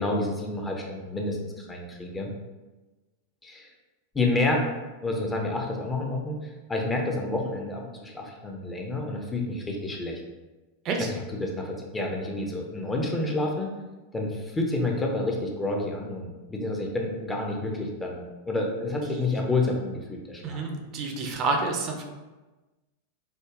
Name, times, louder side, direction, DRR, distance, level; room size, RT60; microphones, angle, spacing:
voice 1, 0.0-2.3 3.4-3.7 4.1-4.6 5.0-6.4 6.7-10.2 11.0-13.7 14.1-20.6, left 2 dB, 15° left, 0 dB, 0.5 m, -29 dB
voice 2, 20.4-22.0, right 3 dB, 35° right, 3 dB, 0.5 m, -29 dB
5.0 x 2.1 x 2.4 m, 1.2 s
figure-of-eight pair, 90°, 0 cm